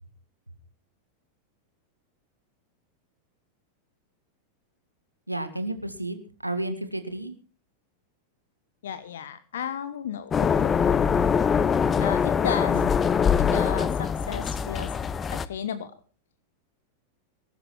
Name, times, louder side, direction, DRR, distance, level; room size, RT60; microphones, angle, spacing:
voice 1, 5.3-7.3 12.7-12.9 13.7-13.9, right 1 dB, 85° right, 9 dB, 2.0 m, -32 dB
voice 2, 8.8-10.7 12.0-12.7 13.5-14.9 15.3-15.9, left 8 dB, 60° left, 13 dB, 1.1 m, -33 dB
sound 1, 10.3-15.5, left 7 dB, 20° left, 0.8 m, -23 dB
19.5 x 12.0 x 4.5 m, 0.37 s
figure-of-eight pair, 90°, 0 cm